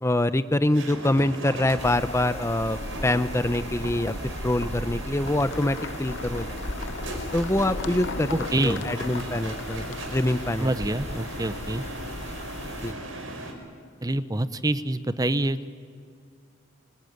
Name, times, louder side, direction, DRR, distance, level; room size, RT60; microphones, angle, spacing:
voice 1, 0.0-4.1 4.4-6.6 7.3-8.3 8.6-9.8 10.1-10.7 12.8-12.9, left 1 dB, 15° left, 12 dB, 0.6 m, -25 dB
sound 1, 0.7-13.5, right 1 dB, 80° right, 5.1 m, -37 dB
sound 2, 1.8-12.9, left 1 dB, 35° left, 1.0 m, -38 dB
sound 3, 5.3-10.7, left 4 dB, 60° left, 0.9 m, -38 dB
voice 2, 8.3-8.8 10.6-11.8 14.0-15.7, right 1 dB, 20° right, 13 dB, 0.8 m, -26 dB
25.0 x 25.0 x 9.4 m, 2.3 s
head